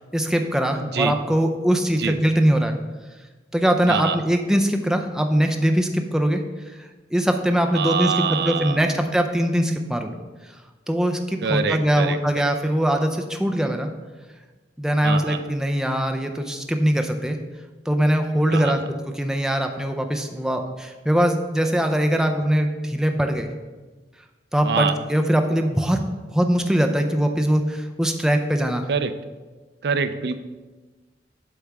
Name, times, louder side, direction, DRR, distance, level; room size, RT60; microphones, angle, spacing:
voice 1, 0.0-2.8 3.5-6.4 6.8-10.1 10.9-13.9 14.8-17.4 17.9-18.8 19.1-23.5 24.5-26.0 26.3-28.9, equal, 5° right, 4 dB, 0.5 m, -22 dB
voice 2, 0.8-1.2 2.0-2.2 3.9-4.2 7.7-9.0 11.4-12.2 15.0-15.5 18.5-18.9 24.6-25.0 28.9-29.1 29.8-30.4, right 5 dB, 65° right, 11 dB, 0.4 m, -25 dB
7.9 x 3.5 x 6.0 m, 1.3 s
head